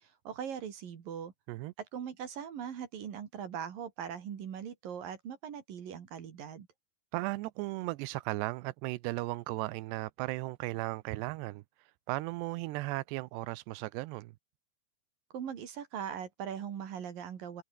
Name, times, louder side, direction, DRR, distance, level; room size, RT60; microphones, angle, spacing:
voice 1, 0.0-1.3 1.8-6.7 15.3-17.6, right 8 dB, 60° right, 3.8 m, -40 dB
voice 2, 7.1-11.6 12.1-14.3, right 20 dB, 90° right, 2.8 m, -36 dB
omnidirectional pair, 4.8 m